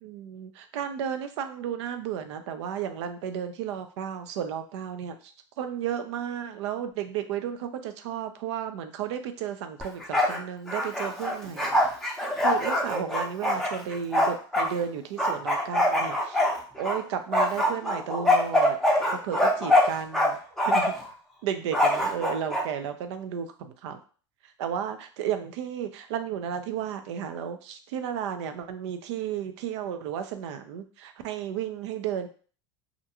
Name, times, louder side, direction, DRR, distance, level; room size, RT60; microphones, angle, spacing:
voice 1, 0.0-5.3 5.6-11.9 12.4-16.4 16.8-18.8 19.2-20.4 20.7-20.9 21.4-24.0 24.6-32.3, right 9 dB, 70° right, 8 dB, 0.4 m, -33 dB
Bark, 9.8-10.4 10.7-14.7 15.2-17.0 17.3-20.3 20.6-21.1 21.7-22.6, left 1 dB, ahead, 0.6 m, -23 dB
2.5 x 2.2 x 2.8 m, 0.40 s
hypercardioid pair, 95°, 15 cm